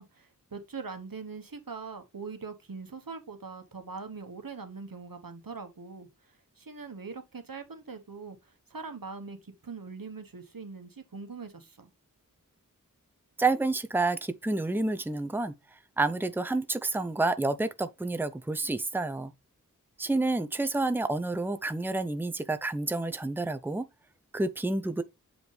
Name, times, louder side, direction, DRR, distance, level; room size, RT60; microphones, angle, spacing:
voice 1, 0.0-6.1 6.6-11.9, right 4 dB, 85° right, 1.3 m, -42 dB
voice 2, 13.4-15.5 16.0-19.3 20.0-23.8 24.3-25.0, right 2 dB, 5° right, 0.6 m, -29 dB
7.8 x 5.1 x 3.3 m
wide cardioid pair, 50°, 34 cm